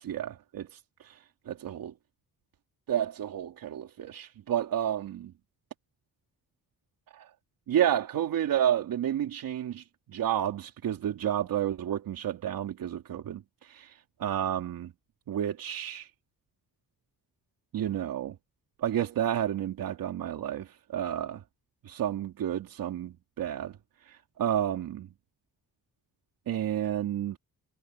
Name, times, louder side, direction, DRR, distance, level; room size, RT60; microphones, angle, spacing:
voice 1, 0.0-1.9 2.9-5.3 7.1-7.2 7.7-9.8 10.1-14.9 15.3-16.1 17.7-18.3 18.8-21.4 21.8-23.8 24.1-25.1 26.5-27.4, right 10 dB, 75° right, 3.1 m, -31 dB
wide cardioid pair, 155°, 35 cm